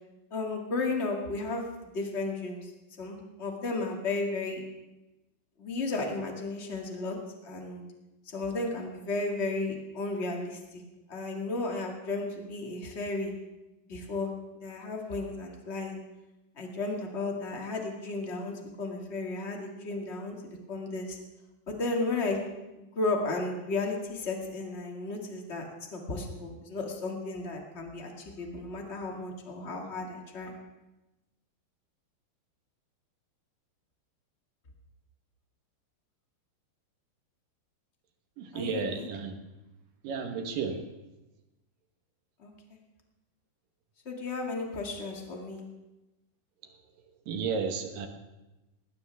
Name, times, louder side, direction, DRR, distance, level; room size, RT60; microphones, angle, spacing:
voice 1, 0.3-2.7 3.0-4.6 5.6-7.2 7.4-7.8 8.2-10.8 11.1-13.3 13.9-14.3 14.5-16.0 16.5-21.2 21.7-22.4 22.8-25.6 25.9-30.5 38.5-39.1 42.4-42.8 44.0-45.6, left 3 dB, 25° left, 1 dB, 1.4 m, -34 dB
voice 2, 38.4-39.4 40.0-40.9 47.3-48.1, right 5 dB, 65° right, 5 dB, 2.7 m, -33 dB
19.5 x 19.5 x 3.5 m, 1.0 s
omnidirectional pair, 4.8 m